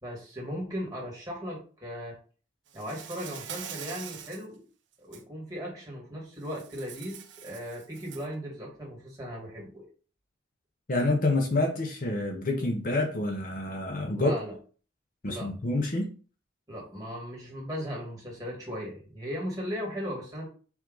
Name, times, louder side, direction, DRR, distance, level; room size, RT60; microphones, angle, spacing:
voice 1, 0.0-2.1 2.7-4.6 5.0-9.8 14.2-14.5 15.3-15.5 16.7-20.5, equal, 15° right, -4 dB, 1.7 m, -37 dB
Insect, 2.7-4.4 4.9-5.2 6.4-8.3, right 9 dB, 65° right, 0.5 m, -44 dB
voice 2, 10.9-14.3 15.2-16.1, left 2 dB, 45° left, 2 dB, 0.7 m, -27 dB
4.7 x 2.6 x 3.8 m, 0.39 s
head